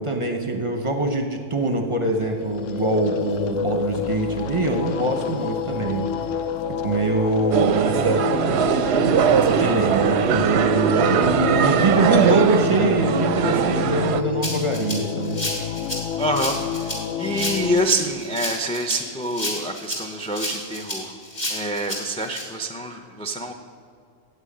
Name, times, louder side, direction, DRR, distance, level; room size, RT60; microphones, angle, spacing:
voice 1, 0.0-6.1 6.8-8.3 9.3-15.4, right 2 dB, 30° right, 3 dB, 0.8 m, -23 dB
sound 1, 2.1-17.8, left 8 dB, 85° left, 1.0 m, -29 dB
sound 2, 7.5-14.2, right 8 dB, 65° right, 0.8 m, -21 dB
Rattle (instrument), 14.4-22.4, left 1 dB, 35° left, 2.5 m, -31 dB
voice 2, 16.2-16.6 17.2-21.1 21.5-23.5, right 1 dB, 10° left, 5 dB, 0.4 m, -26 dB
9.0 x 8.1 x 8.6 m, 2.2 s
omnidirectional pair, 1.3 m